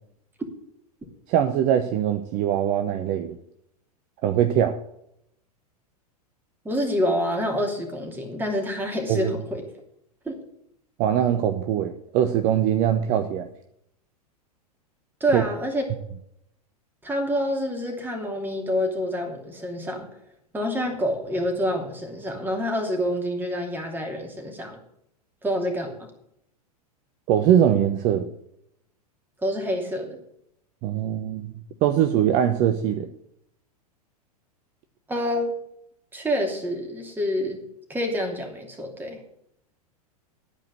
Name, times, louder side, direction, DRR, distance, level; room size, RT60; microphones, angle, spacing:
voice 1, 1.3-3.3 4.2-4.8 9.1-9.3 11.0-13.5 15.3-15.4 27.3-28.3 30.8-33.1, right 10 dB, 40° right, 8 dB, 0.8 m, -22 dB
voice 2, 6.6-9.6 10.2-10.4 15.2-15.8 17.0-20.1 20.5-24.8 25.4-26.1 29.4-30.2 35.1-35.5 36.1-37.6 37.9-39.2, equal, 10° right, 2 dB, 2.8 m, -27 dB
12.5 x 5.2 x 8.1 m, 0.74 s
figure-of-eight pair, 95°, 20 cm